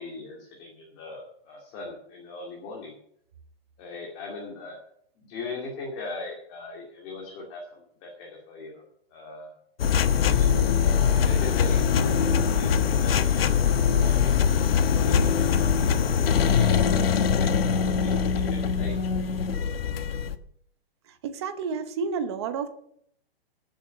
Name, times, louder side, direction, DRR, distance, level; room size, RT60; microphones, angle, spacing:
voice 1, 0.0-3.0 3.8-4.8 5.2-8.8 9.1-9.5 10.0-10.5 11.1-15.9 16.4-18.9, left 3 dB, 25° left, -2 dB, 2.3 m, -40 dB
sound 1, 9.8-20.4, left 7 dB, 70° left, 1.1 m, -22 dB
voice 2, 21.1-22.7, right 5 dB, 25° right, 10 dB, 0.9 m, -30 dB
15.0 x 7.4 x 6.8 m, 0.69 s
hypercardioid pair, 175°, 31 cm